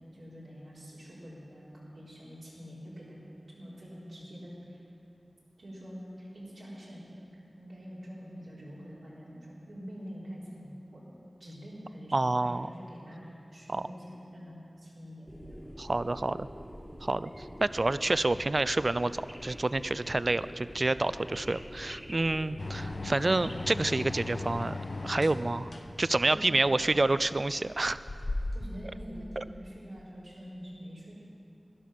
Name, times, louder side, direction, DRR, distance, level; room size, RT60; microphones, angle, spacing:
voice 1, 0.1-3.2 3.5-4.8 5.6-7.0 7.5-11.1 11.4-16.2 26.2-26.7 28.5-31.1, equal, 90° right, -8 dB, 3.9 m, -45 dB
voice 2, 12.1-12.7 13.7-13.8 15.8-16.5 17.0-24.8 25.0-25.7 26.0-28.0 29.4-29.5, right 2 dB, 50° right, 15 dB, 0.3 m, -28 dB
sound 1, 15.3-24.6, equal, ahead, 1.3 m, -46 dB
sound 2, 22.6-28.8, left 2 dB, 60° left, 0.8 m, -37 dB
12.0 x 11.5 x 5.8 m, 2.6 s
wide cardioid pair, 55°, 0 cm